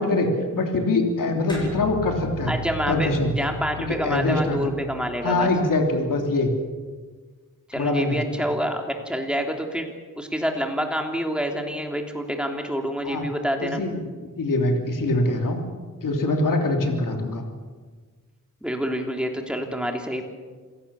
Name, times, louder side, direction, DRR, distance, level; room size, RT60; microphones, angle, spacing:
voice 1, 0.0-2.5 2.9-3.3 3.9-4.7 5.2-6.5 7.7-8.2 13.0-13.2 13.6-14.1 14.4-15.6 16.0-17.4, left 2 dB, 90° left, 3 dB, 3.2 m, -23 dB
sound 1, 1.5-6.2, left 1 dB, 15° left, 7.9 m, -38 dB
voice 2, 2.5-5.5 7.7-9.9 10.1-13.8 18.6-20.2, equal, 5° right, 2 dB, 3.2 m, -27 dB
27.0 x 17.5 x 7.1 m, 1.5 s
wide cardioid pair, 110°, 32 cm